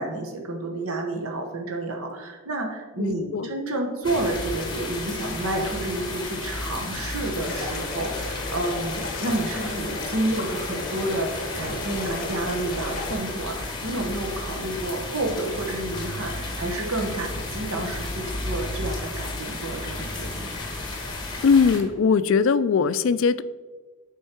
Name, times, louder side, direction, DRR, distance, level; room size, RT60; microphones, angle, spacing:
voice 1, 0.0-20.6, right 2 dB, 75° right, 2 dB, 1.1 m, -30 dB
voice 2, 3.0-3.5 21.4-23.4, left 5 dB, 60° left, 15 dB, 0.3 m, -20 dB
sound 1, 4.0-21.8, left 2 dB, 20° left, 1.3 m, -33 dB
sound 2, 7.4-13.1, left 3 dB, 40° left, 0.8 m, -35 dB
7.9 x 5.6 x 4.4 m, 1.4 s
head